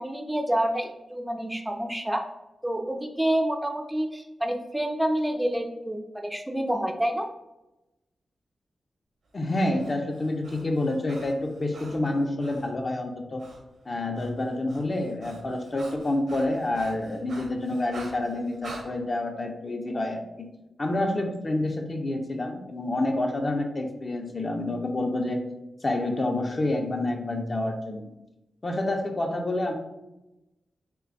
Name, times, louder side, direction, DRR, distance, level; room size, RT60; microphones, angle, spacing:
voice 1, 0.0-2.3 2.6-7.3, right 1 dB, 10° right, 3 dB, 0.3 m, -28 dB
voice 2, 9.3-13.4 13.9-20.5 20.8-25.4 25.8-28.0 28.6-29.7, left 2 dB, 45° left, 3 dB, 0.5 m, -28 dB
Breathing, 9.5-12.7 13.4-13.6 13.9-18.9, right 3 dB, 85° right, 0.7 m, -46 dB
3.2 x 2.2 x 3.8 m, 0.96 s
cardioid pair, 55°, 0 cm